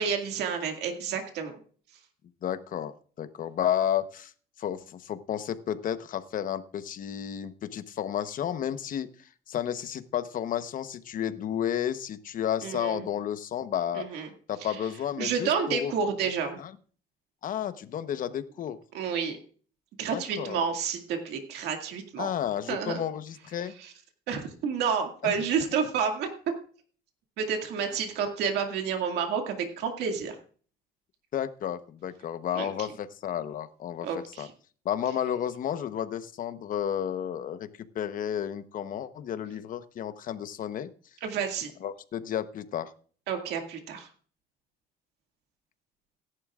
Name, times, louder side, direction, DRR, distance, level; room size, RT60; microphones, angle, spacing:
voice 1, 0.0-1.6 12.6-13.1 13.9-14.3 14.6-14.8 15.2-16.6 18.9-19.4 20.0-22.3 22.7-23.0 23.8-23.9 24.3-26.3 27.4-30.4 32.5-32.9 34.0-34.5 41.2-41.7 43.3-44.1, right 6 dB, 80° right, 4 dB, 2.1 m, -30 dB
voice 2, 2.4-2.9 3.2-4.3 4.6-14.1 14.5-15.9 16.6-16.7 17.4-18.8 20.1-20.6 22.2-23.7 25.2-25.3 31.3-34.1 34.4-34.5 34.8-37.7 37.9-40.9 41.8-42.9, left 10 dB, 55° left, 11 dB, 1.0 m, -32 dB
17.5 x 11.0 x 2.4 m, 0.43 s
cardioid pair, 110°, 17 cm